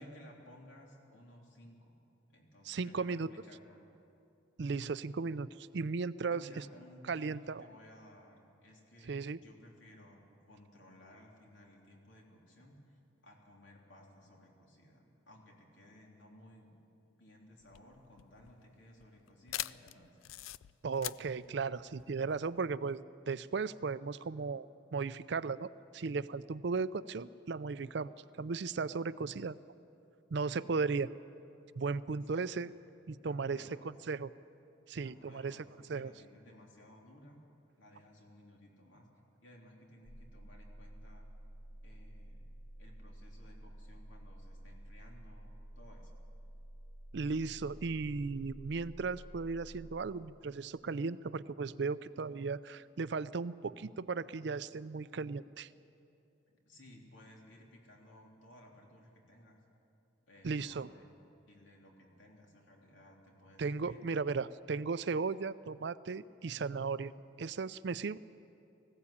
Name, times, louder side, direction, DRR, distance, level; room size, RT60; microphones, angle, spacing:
voice 1, 0.0-3.8 6.3-16.8 17.2-20.2 32.3-32.5 33.3-33.9 35.0-37.4 37.8-39.1 39.4-41.3 41.8-46.2 56.7-59.6 60.3-61.0 61.5-64.1, left 1 dB, 70° left, -1 dB, 3.4 m, -58 dB
voice 2, 2.7-3.3 4.6-6.6 7.1-7.7 9.1-9.4 20.8-24.7 24.9-29.6 30.3-31.1 31.8-32.7 33.1-33.7 34.1-34.3 34.9-35.6 35.9-36.1 47.1-55.7 60.4-60.9 63.6-67.1 67.4-68.2, right 4 dB, 60° right, 16 dB, 0.4 m, -36 dB
sound 1, 17.6-22.8, left 14 dB, 85° left, 0.4 m, -44 dB
sound 2, 40.0-50.1, right 1 dB, 55° left, 1.8 m, -51 dB
19.5 x 16.0 x 8.5 m, 2.7 s
head